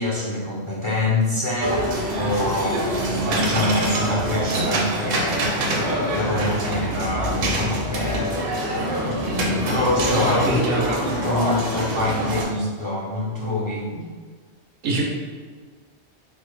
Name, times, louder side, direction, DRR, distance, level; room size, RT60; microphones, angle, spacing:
voice 1, 0.0-5.5 5.7-10.4 10.7-13.9, left 2 dB, 40° left, -6 dB, 0.4 m, -25 dB
sound 1, 1.6-12.4, right 1 dB, 65° right, 0.8 m, -25 dB
voice 2, 10.1-10.8 12.6-12.7 13.9-14.0 14.8-15.0, right 2 dB, 90° right, -2 dB, 1.0 m, -24 dB
4.0 x 2.0 x 3.2 m, 1.5 s
omnidirectional pair, 1.1 m